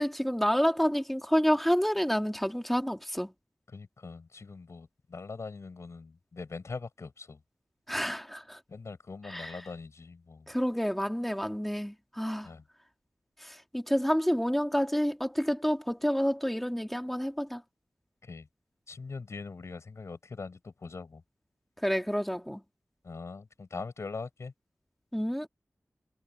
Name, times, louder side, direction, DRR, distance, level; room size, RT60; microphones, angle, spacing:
voice 1, 0.0-3.3 7.9-8.6 9.3-9.6 10.5-12.5 13.7-17.6 21.8-22.6 25.1-25.5, equal, 5° left, 2.7 m, -28 dB
voice 2, 3.7-7.4 8.7-10.5 12.4-12.6 18.2-18.5 18.9-21.2 23.0-24.5, left 4 dB, 70° left, 6.8 m, -42 dB
wide cardioid pair, 75°, 5 cm